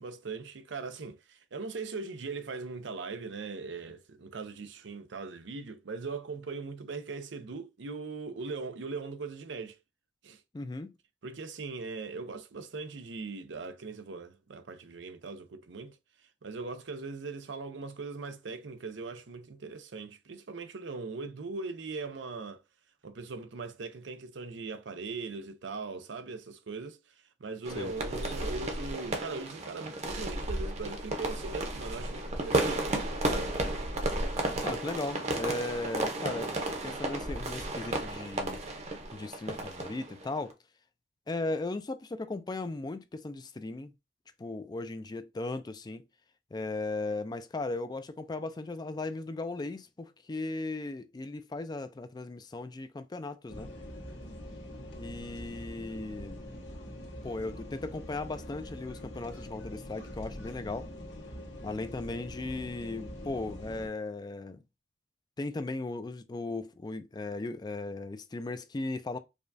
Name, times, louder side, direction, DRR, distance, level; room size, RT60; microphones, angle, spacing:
voice 1, 0.0-9.8 10.2-10.4 11.2-16.0 16.4-22.6 23.0-27.0 27.4-33.1, right 4 dB, 85° right, 0.6 m, -40 dB
voice 2, 10.5-10.9 27.8-27.9 34.6-38.6 39.1-40.6 41.3-43.9 44.4-46.0 46.5-53.7 55.0-56.4 57.2-60.9 61.6-64.6 65.4-69.2, left 2 dB, 25° left, 0.4 m, -37 dB
sound 1, 27.6-40.5, right 2 dB, 35° right, 0.8 m, -33 dB
sound 2, 53.5-63.9, equal, 75° left, 1.4 m, -44 dB
4.9 x 2.3 x 2.6 m
head